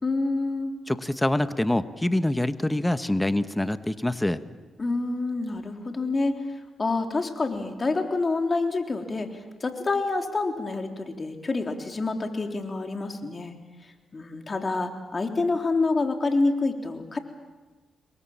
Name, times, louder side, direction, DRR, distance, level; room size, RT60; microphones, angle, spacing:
voice 1, 0.0-0.7 4.8-6.4 6.8-9.3 9.6-13.5 14.1-17.2, left 3 dB, 40° left, 4 dB, 3.6 m, -27 dB
voice 2, 0.9-4.4, left 1 dB, 10° left, 11 dB, 1.2 m, -25 dB
28.5 x 22.5 x 7.4 m, 1.2 s
supercardioid pair, 60°, 0 cm